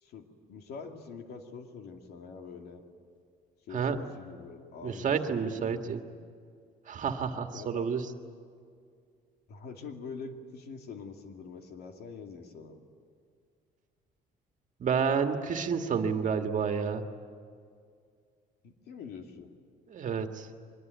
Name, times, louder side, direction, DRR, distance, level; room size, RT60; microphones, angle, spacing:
voice 1, 0.0-2.8 3.7-6.0 7.5-7.9 9.5-12.8 18.6-19.5, left 5 dB, 70° left, 4 dB, 2.5 m, -45 dB
voice 2, 4.8-6.0 6.9-8.1 14.8-17.0 19.9-20.5, right 6 dB, 50° right, 6 dB, 1.8 m, -30 dB
24.0 x 21.0 x 9.3 m, 2.2 s
cardioid pair, 110°, 17 cm